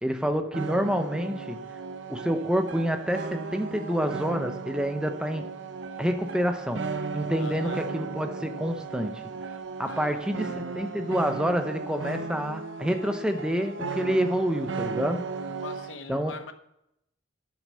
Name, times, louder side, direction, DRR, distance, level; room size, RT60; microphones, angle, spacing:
voice 1, 0.0-1.6 2.1-5.5 6.0-9.2 9.8-15.5 16.1-16.3, equal, 5° right, 7 dB, 0.7 m, -28 dB
sound 1, 0.5-16.0, right 4 dB, 70° right, 0.7 m, -35 dB
voice 2, 7.4-7.8 9.9-10.2 15.6-16.5, left 4 dB, 85° left, 8 dB, 1.0 m, -42 dB
10.5 x 6.2 x 5.5 m, 0.80 s
head